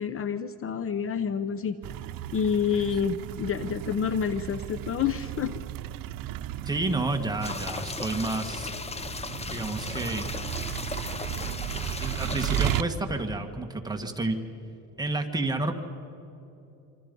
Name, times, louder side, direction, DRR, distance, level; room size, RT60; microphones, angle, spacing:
voice 1, 0.0-1.8 2.3-5.5, left 7 dB, 40° left, 13 dB, 0.8 m, -28 dB
sound 1, 1.8-12.8, right 13 dB, 75° right, 0.8 m, -35 dB
voice 2, 6.7-8.8 9.5-10.3 12.0-14.4 15.0-15.7, right 2 dB, 10° right, 3 dB, 1.7 m, -30 dB
sound 2, 7.4-12.8, left 3 dB, 20° left, 1.0 m, -36 dB
26.5 x 25.5 x 5.4 m, 2.9 s
cardioid pair, 120°, 34 cm